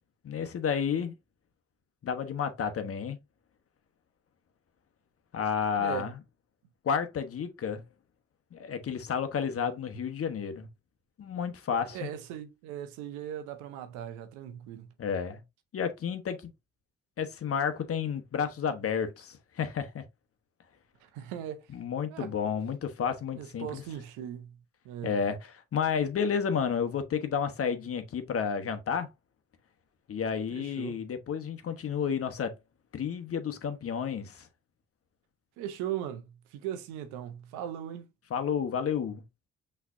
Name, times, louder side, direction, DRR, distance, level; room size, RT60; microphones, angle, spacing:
voice 1, 0.2-1.1 2.0-3.2 5.3-6.2 6.8-7.8 8.5-10.7 11.2-12.1 15.0-15.4 15.7-16.5 17.2-20.0 21.7-23.8 25.0-29.1 30.1-32.5 32.9-34.5 38.3-39.2, left 7 dB, 50° left, 1.1 m, -31 dB
voice 2, 5.8-6.1 11.9-14.9 21.0-21.6 22.1-22.3 23.4-24.6 24.8-25.2 30.5-31.0 35.6-38.1, right 10 dB, 85° right, 0.8 m, -38 dB
5.9 x 3.3 x 2.6 m
supercardioid pair, 55°, 29 cm